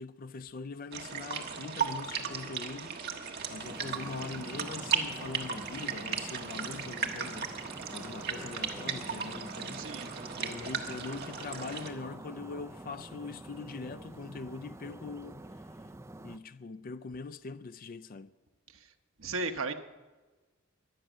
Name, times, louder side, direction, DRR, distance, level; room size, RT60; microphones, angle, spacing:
voice 1, 0.0-15.9 16.2-18.3, left 4 dB, 45° left, 0.4 m, -42 dB
sound 1, 0.9-11.9, right 6 dB, 50° right, 1.5 m, -36 dB
sound 2, 3.6-16.4, right 1 dB, 15° right, 0.5 m, -47 dB
voice 2, 9.8-10.3 18.7-18.9 19.2-19.8, right 3 dB, 80° right, 1.0 m, -36 dB
22.5 x 9.1 x 6.2 m
head